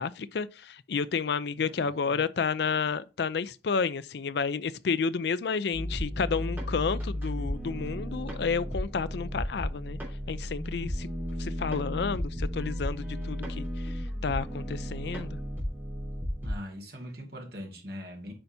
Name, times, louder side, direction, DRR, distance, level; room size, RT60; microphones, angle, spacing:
voice 1, 0.0-10.0 10.3-11.1 11.4-13.9 14.2-15.4, left 5 dB, 65° left, 0.4 m, -31 dB
voice 2, 1.6-2.2 16.4-18.3, equal, 60° right, 2.4 m, -42 dB
sound 1, 5.7-16.6, equal, 10° right, 3.1 m, -34 dB
8.8 x 5.4 x 2.7 m
head